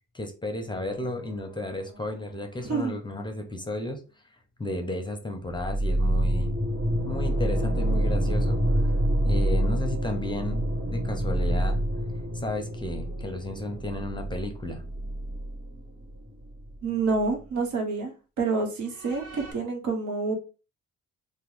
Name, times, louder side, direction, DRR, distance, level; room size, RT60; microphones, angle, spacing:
voice 1, 0.1-4.0 4.6-6.5 7.0-8.9 9.2-11.8 12.3-14.8, left 1 dB, 15° left, 5 dB, 0.6 m, -33 dB
sound 1, 0.7-3.5 5.5-16.9 17.1-17.2 18.9-19.5, right 1 dB, 55° right, 1.9 m, -28 dB
voice 2, 2.6-3.0 16.8-20.3, right 4 dB, 70° right, 3 dB, 1.1 m, -28 dB
2.9 x 2.1 x 3.7 m, 0.32 s
cardioid pair, 90°, 30 cm